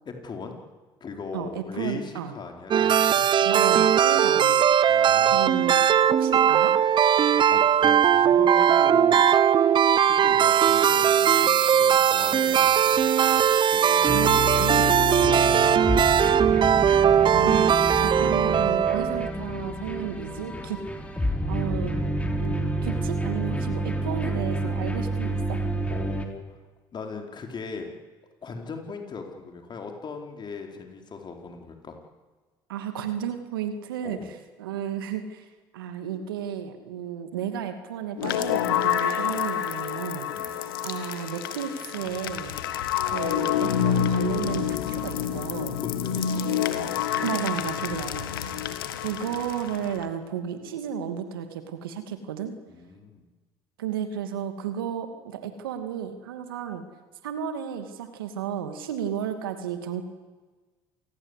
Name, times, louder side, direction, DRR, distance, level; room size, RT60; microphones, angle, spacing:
voice 1, 0.0-0.5 1.0-3.2 4.9-5.5 7.5-9.3 10.0-14.5 15.1-16.2 25.9-26.6 26.9-27.9 28.4-32.0 34.0-34.3 40.3-40.5 45.8-47.0 52.7-53.3, left 4 dB, 40° left, 3 dB, 4.8 m, -39 dB
voice 2, 1.3-2.3 3.4-4.6 5.3-6.8 14.1-15.0 17.3-17.7 18.0-20.8 21.5-22.0 22.4-25.6 32.7-35.5 35.7-40.3 40.8-42.6 43.0-45.8 47.2-48.3 49.0-52.5 53.8-56.8 57.2-60.0, right 8 dB, 90° right, 8 dB, 2.5 m, -33 dB
sound 1, 2.7-19.3, right 9 dB, 45° right, 1.1 m, -19 dB
sound 2, 14.1-26.3, equal, 10° left, 3.8 m, -29 dB
sound 3, 38.2-50.1, left 9 dB, 85° left, 1.7 m, -28 dB
27.5 x 19.5 x 8.4 m, 1.3 s
hypercardioid pair, 65°, 11 cm